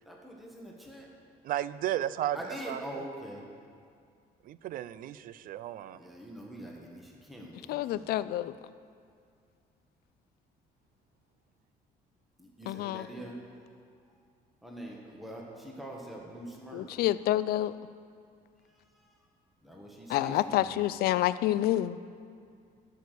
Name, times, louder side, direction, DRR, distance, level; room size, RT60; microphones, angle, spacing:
voice 1, 0.1-1.1 2.3-3.5 5.9-8.1 12.4-13.4 14.6-16.9 19.6-20.8, equal, ahead, -2 dB, 1.5 m, -44 dB
voice 2, 1.4-3.0 4.4-6.0, right 12 dB, 60° right, 16 dB, 0.4 m, -34 dB
voice 3, 7.7-8.5 12.7-13.1 16.7-17.7 20.1-22.0, left 14 dB, 70° left, 15 dB, 0.4 m, -28 dB
12.5 x 6.4 x 6.8 m, 2.3 s
cardioid pair, 125°, 16 cm